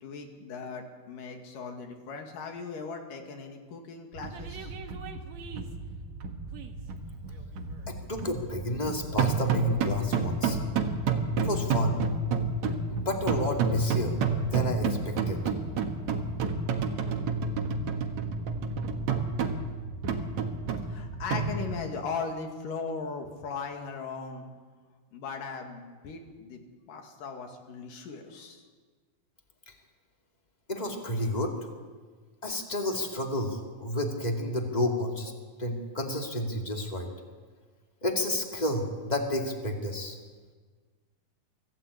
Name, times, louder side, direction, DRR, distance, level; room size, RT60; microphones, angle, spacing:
voice 1, 0.0-4.8 20.8-24.5 25.1-26.6 26.9-28.7, left 5 dB, 60° left, 4 dB, 3.6 m, -38 dB
sound 1, 4.1-21.9, right 4 dB, 55° right, 2.2 m, -30 dB
voice 2, 7.9-10.6 11.4-12.0 12.9-15.4 30.7-31.5 32.4-35.3 35.6-37.1 38.0-40.1, left 1 dB, 15° left, 2 dB, 1.7 m, -30 dB
24.5 x 15.5 x 8.4 m, 1.5 s
omnidirectional pair, 4.6 m